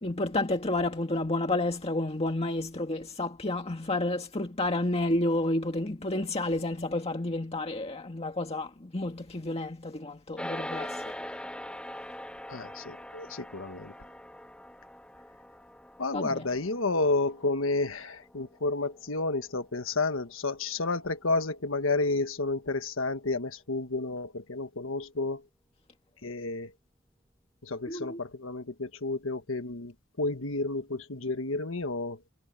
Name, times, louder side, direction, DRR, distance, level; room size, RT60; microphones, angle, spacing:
voice 1, 0.0-11.0 16.1-16.5 27.9-28.2, left 2 dB, 30° left, 2.0 m, -30 dB
sound 1, 10.4-19.9, left 1 dB, 5° left, 3.1 m, -42 dB
voice 2, 12.5-13.9 16.0-25.4 26.2-26.7 27.6-32.2, left 3 dB, 75° left, 1.4 m, -31 dB
head